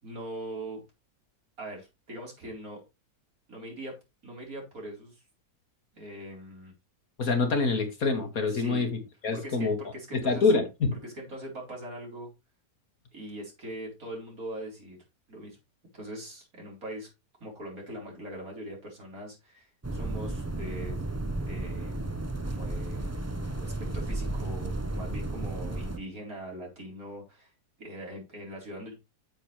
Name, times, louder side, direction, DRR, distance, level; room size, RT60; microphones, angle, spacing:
voice 1, 0.0-0.8 1.6-2.8 3.5-3.9 4.2-5.2 5.9-6.7 8.5-8.9 9.3-10.5 11.0-12.3 13.1-15.0 15.3-15.6 15.9-17.1 17.4-21.0 21.4-22.1 22.4-23.1 23.6-27.5 27.8-28.9, right 1 dB, 60° right, -1 dB, 4.7 m, -41 dB
voice 2, 7.2-9.8 10.1-10.9, left 4 dB, 60° left, 4 dB, 2.5 m, -26 dB
sound 1, 19.8-26.0, right 2 dB, 15° right, 0.6 m, -33 dB
9.1 x 7.4 x 3.3 m, 0.25 s
omnidirectional pair, 1.7 m